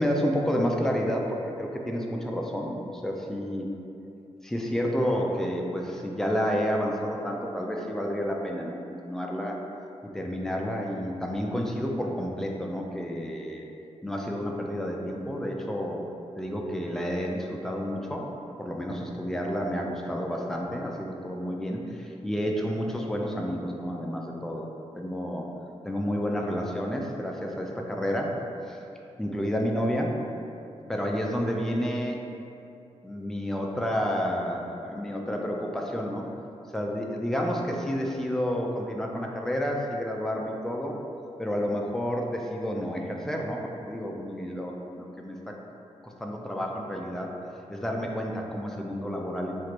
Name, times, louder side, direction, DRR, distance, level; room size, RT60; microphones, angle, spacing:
voice 1, 0.0-3.7 4.4-9.6 10.1-13.7 14.0-16.0 16.4-18.3 18.6-24.7 25.0-25.5 25.8-28.4 28.7-28.8 29.2-30.2 30.9-32.2 33.0-36.3 36.7-41.0 41.4-45.5 46.0-47.3 47.7-49.6, equal, 5° left, 0 dB, 0.4 m, -30 dB
3.0 x 2.5 x 4.4 m, 2.7 s
wide cardioid pair, 120°, 11 cm